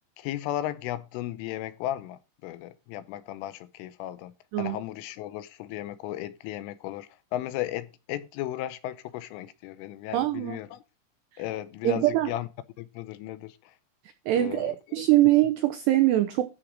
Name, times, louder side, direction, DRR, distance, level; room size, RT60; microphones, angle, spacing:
voice 1, 0.2-10.8 11.4-12.5 12.8-13.7 14.4-15.0, left 13 dB, 80° left, 3.1 m, -35 dB
voice 2, 10.1-10.6 11.8-12.3 14.3-16.5, right 15 dB, 90° right, 2.4 m, -23 dB
13.5 x 5.9 x 5.1 m
omnidirectional pair, 6.0 m